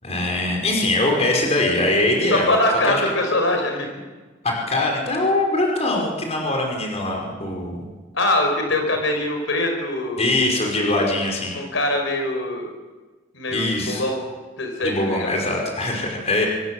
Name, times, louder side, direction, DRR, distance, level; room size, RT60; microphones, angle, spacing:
voice 1, 0.0-2.6 2.8-3.0 4.4-7.8 10.2-11.6 13.5-14.0 14.8-16.5, left 2 dB, 35° left, 0 dB, 5.5 m, -22 dB
voice 2, 2.3-3.9 8.1-10.2 11.5-12.7 13.3-14.2 14.6-14.9 15.2-15.3, left 1 dB, 70° left, 3 dB, 5.5 m, -22 dB
25.0 x 22.0 x 7.8 m, 1.3 s
head